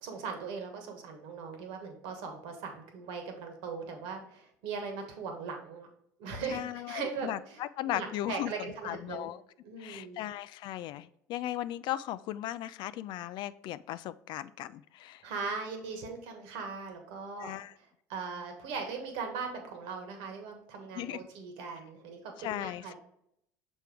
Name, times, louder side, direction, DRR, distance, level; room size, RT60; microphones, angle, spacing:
voice 1, 0.0-5.9 6.2-9.3 9.6-10.2 15.2-22.9, right 5 dB, 65° right, 4 dB, 1.4 m, -39 dB
voice 2, 6.5-9.4 9.8-15.2 17.4-17.7 21.0-21.2 22.4-22.9, left 13 dB, 55° left, 15 dB, 0.4 m, -37 dB
6.1 x 4.5 x 3.4 m, 0.74 s
hypercardioid pair, 75°, 9 cm